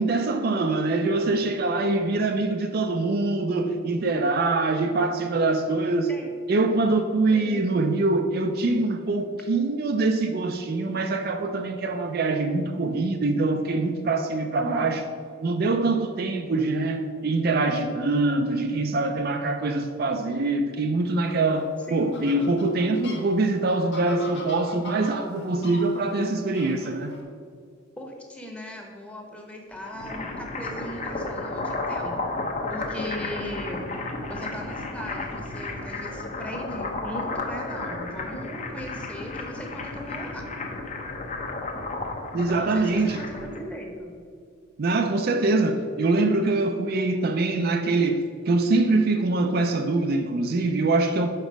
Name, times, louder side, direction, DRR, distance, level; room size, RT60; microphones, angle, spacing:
voice 1, 0.0-6.1 6.5-15.0 15.4-27.1 42.3-43.3 44.8-51.3, right 2 dB, 50° right, 0.4 m, -24 dB
voice 2, 7.3-7.7 14.6-14.9 21.9-22.4 28.0-32.3 32.7-33.8 34.3-40.4 42.5-44.1, equal, 5° left, 0.9 m, -38 dB
Fowl, 21.1-27.2, left 2 dB, 60° left, 1.2 m, -43 dB
sound 1, 29.7-43.6, left 2 dB, 35° left, 0.7 m, -33 dB
5.2 x 4.9 x 6.3 m
head